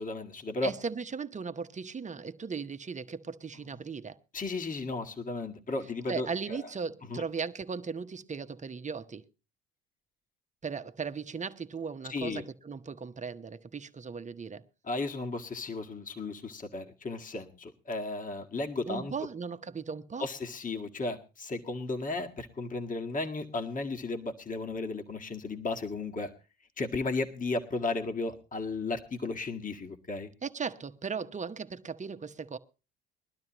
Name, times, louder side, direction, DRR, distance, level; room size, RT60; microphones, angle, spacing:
voice 1, 0.0-0.7 4.3-6.6 7.1-7.2 12.1-12.4 14.8-19.1 20.2-26.3 26.8-30.3, left 3 dB, 30° left, 1.8 m, -34 dB
voice 2, 0.6-4.2 6.1-9.2 10.6-14.6 18.9-20.3 30.4-32.6, right 5 dB, 25° right, 1.0 m, -37 dB
21.5 x 12.0 x 3.0 m
hypercardioid pair, 60°, 29 cm